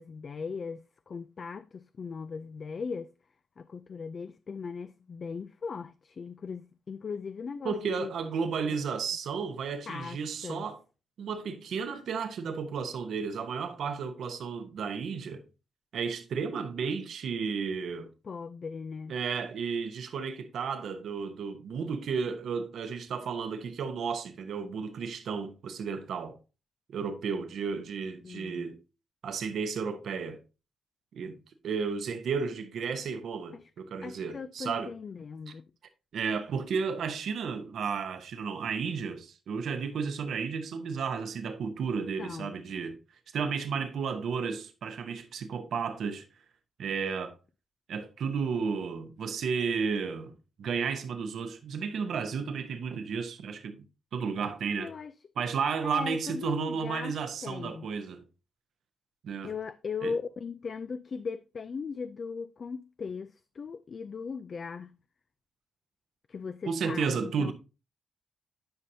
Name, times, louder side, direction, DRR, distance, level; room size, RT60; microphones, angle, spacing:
voice 1, 0.0-3.1 3.6-8.1 8.7-8.8 9.9-10.6 18.2-19.2 28.2-28.7 33.5-33.7 34.0-35.6 42.2-42.5 54.8-55.1 55.8-57.2 57.4-57.9 59.4-65.0 66.3-67.5, left 5 dB, 55° left, 0.3 m, -38 dB
voice 2, 7.6-10.8 11.2-15.4 15.9-18.1 19.1-26.4 26.9-28.8 29.2-30.4 31.1-31.4 31.6-34.9 36.1-43.0 43.3-46.2 46.8-47.3 47.9-50.3 50.6-53.8 54.1-54.9 55.4-58.2 59.2-59.5 60.0-60.1 66.7-67.5, right 5 dB, 70° right, 0.9 m, -33 dB
10.5 x 5.4 x 2.7 m
supercardioid pair, 45°, 0 cm